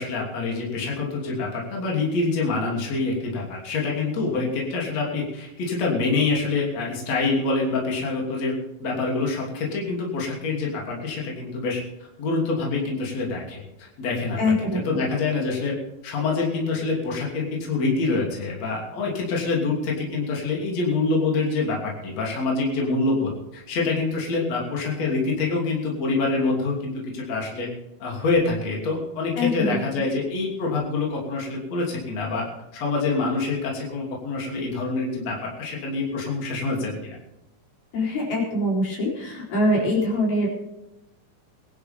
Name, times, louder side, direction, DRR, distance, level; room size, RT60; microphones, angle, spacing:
voice 1, 0.0-8.5 8.8-11.8 12.2-15.7 16.0-27.7 28.0-32.5 32.7-37.0, left 3 dB, 45° left, -2 dB, 4.0 m, -26 dB
voice 2, 14.4-14.8 29.4-29.8 37.9-40.5, left 1 dB, 80° left, -2 dB, 6.0 m, -23 dB
21.0 x 11.5 x 3.6 m, 0.92 s
omnidirectional pair, 4.3 m